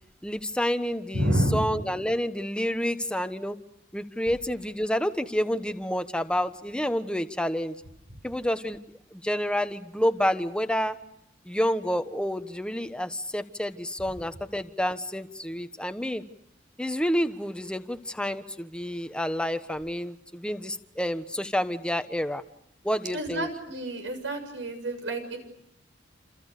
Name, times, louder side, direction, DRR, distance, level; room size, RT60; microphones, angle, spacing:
voice 1, 0.2-3.5 3.9-7.7 8.2-8.8 9.2-10.9 11.5-16.2 16.8-22.4 22.8-23.5, equal, 5° left, 8 dB, 1.2 m, -29 dB
voice 2, 1.1-1.6 23.1-25.4, right 1 dB, 75° right, 6 dB, 7.0 m, -28 dB
28.5 x 28.0 x 6.7 m, 0.79 s
head